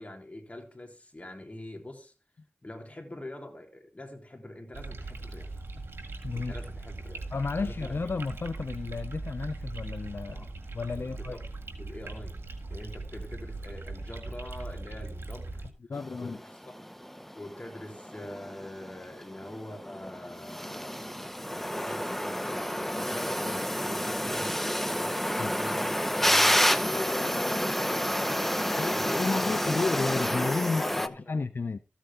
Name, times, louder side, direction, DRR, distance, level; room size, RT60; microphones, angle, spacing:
voice 1, 0.0-2.1 2.6-5.6 6.4-7.3 7.6-7.9 10.3-10.5 11.0-11.4 11.7-12.3 12.7-15.6 16.2-16.8 17.3-29.7 30.6-31.4, left 1 dB, 35° left, 3.4 m, -44 dB
sound 1, 4.7-15.7, right 2 dB, 85° right, 1.8 m, -40 dB
voice 2, 7.3-10.5 10.7-11.4 15.9-16.4 25.4-25.5 28.8-31.8, left 4 dB, 70° left, 0.5 m, -32 dB
sound 2, 15.9-31.1, equal, 5° left, 0.8 m, -30 dB
13.5 x 8.2 x 3.6 m
cardioid pair, 40°, 4 cm